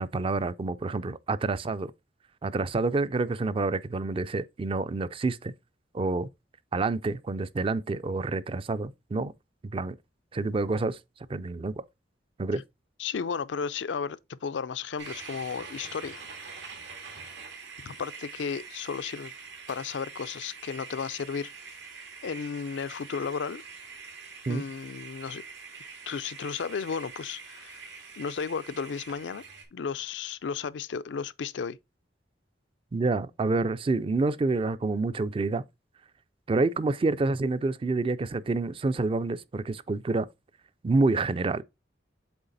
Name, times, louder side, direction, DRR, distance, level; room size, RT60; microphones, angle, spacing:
voice 1, 0.0-1.9 2.4-5.5 5.9-6.3 6.7-9.3 9.7-10.0 10.3-11.0 11.3-11.8 12.4-12.6 24.5-24.6 32.9-35.6 36.5-40.3 40.8-41.6, right 3 dB, 30° right, 0.4 m, -28 dB
voice 2, 13.0-16.2 17.8-19.3 19.7-21.5 22.2-23.6 24.5-25.4 26.1-27.8 28.2-29.4 29.7-31.8, left 6 dB, 90° left, 0.4 m, -34 dB
sound 1, 15.0-29.6, right 5 dB, 80° right, 1.9 m, -45 dB
8.0 x 3.2 x 4.0 m
head